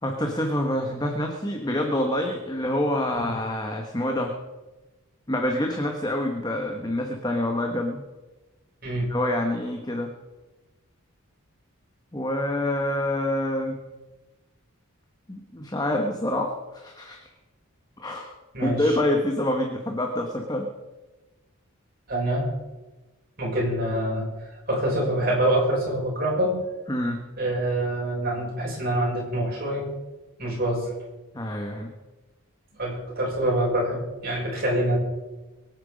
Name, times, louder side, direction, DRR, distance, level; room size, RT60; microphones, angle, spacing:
voice 1, 0.0-4.4 5.3-8.0 9.1-10.1 12.1-13.8 15.3-17.3 18.0-18.3 18.6-20.7 26.9-27.2 31.3-31.9, left 1 dB, 20° left, 2 dB, 1.3 m, -27 dB
voice 2, 18.5-19.0 22.1-22.5 23.4-24.3 24.7-26.6 27.4-29.8 30.4-30.9 32.8-35.0, right 1 dB, 45° right, -3 dB, 6.5 m, -25 dB
23.0 x 9.2 x 5.2 m, 1.1 s
head